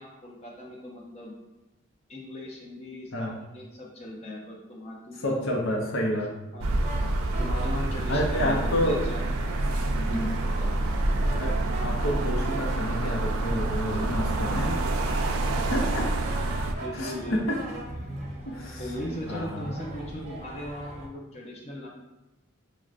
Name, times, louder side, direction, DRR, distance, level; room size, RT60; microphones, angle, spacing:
voice 1, 0.0-1.3 2.1-5.4 6.0-6.2 6.5-6.7 6.9-7.1 7.4-9.3 9.9-10.8 14.5-14.8 15.1-15.9 16.8-17.5 18.8-21.9, left 1 dB, 30° left, -3 dB, 0.6 m, -39 dB
voice 2, 5.2-6.3 8.1-9.0 9.9-10.3 11.4-14.7 15.5-16.1 16.9-17.6 18.5-18.8 19.3-19.7, equal, 75° left, 0 dB, 0.6 m, -29 dB
sound 1, 6.6-16.7, right 2 dB, 90° right, 0.4 m, -27 dB
sound 2, 6.8-21.1, right 1 dB, 35° right, 0.6 m, -40 dB
6.0 x 2.1 x 2.4 m, 1.0 s
head